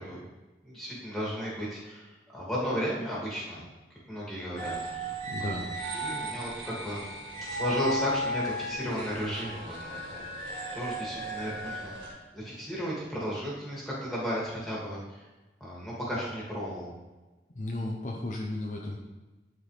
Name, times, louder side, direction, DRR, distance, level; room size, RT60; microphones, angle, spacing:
voice 1, 0.6-2.1 2.3-3.6 4.1-5.1 5.4-5.6 5.9-7.0 7.5-15.2 15.6-16.9, equal, ahead, -7 dB, 2.4 m, -34 dB
sound 1, 4.6-12.1, right 1 dB, 65° right, 2.7 m, -35 dB
voice 2, 5.3-5.7 17.5-19.0, left 2 dB, 45° left, 0 dB, 0.7 m, -34 dB
11.0 x 4.6 x 3.4 m, 1.1 s
head